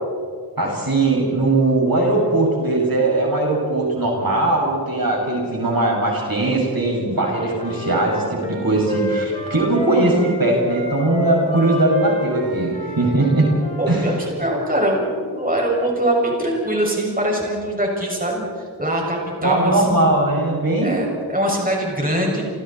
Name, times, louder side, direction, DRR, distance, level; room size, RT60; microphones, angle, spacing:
voice 1, 0.6-13.5 13.9-14.1 19.4-20.9, right 2 dB, 60° right, -2 dB, 6.2 m, -19 dB
Wind instrument woodwind instrument, 7.1-14.2, equal, 15° left, 7.4 m, -30 dB
voice 2, 13.8-20.1 20.8-22.4, right 1 dB, 20° right, -2 dB, 6.6 m, -22 dB
29.5 x 29.0 x 4.4 m, 2.1 s
wide cardioid pair, 70°, 40 cm